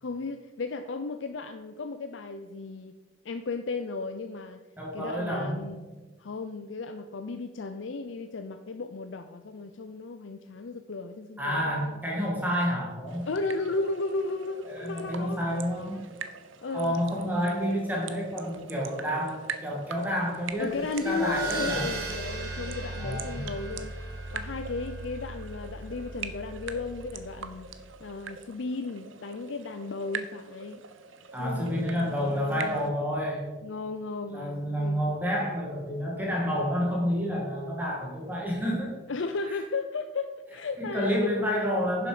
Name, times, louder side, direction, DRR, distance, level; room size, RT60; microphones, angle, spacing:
voice 1, 0.0-3.0 3.2-4.6 4.9-5.8 6.2-12.0 13.3-15.6 16.6-16.9 20.6-24.0 24.3-27.7 28.0-30.8 31.4-32.9 33.6-35.0 39.1-41.3, left 3 dB, 75° left, 8 dB, 0.5 m, -35 dB
voice 2, 4.8-5.6 11.4-13.3 14.6-16.0 16.7-21.9 23.0-23.4 31.3-33.5 34.3-38.9 39.5-39.6 40.8-42.1, equal, 10° right, -3 dB, 1.9 m, -29 dB
sound 1, 13.1-32.9, right 5 dB, 85° right, 0.8 m, -43 dB
sound 2, 20.6-27.6, right 2 dB, 50° right, 3.2 m, -37 dB
11.0 x 7.2 x 5.0 m, 1.3 s
head